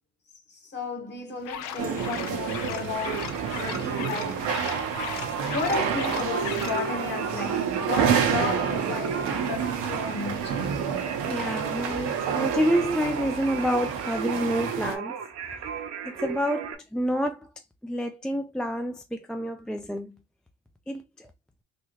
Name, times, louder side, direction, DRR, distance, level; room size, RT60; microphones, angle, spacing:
voice 1, 0.5-4.6 5.4-10.7, left 4 dB, 35° left, 1.2 m, -34 dB
sound 1, 1.4-6.8, left 9 dB, 85° left, 0.6 m, -38 dB
sound 2, 1.8-15.0, right 7 dB, 80° right, 0.8 m, -29 dB
Singing, 2.9-16.7, right 7 dB, 55° right, 0.8 m, -37 dB
voice 2, 11.3-15.2 16.0-17.5 17.8-20.1 20.9-21.3, equal, ahead, 0.3 m, -28 dB
3.4 x 2.7 x 2.8 m
supercardioid pair, 80°, 31 cm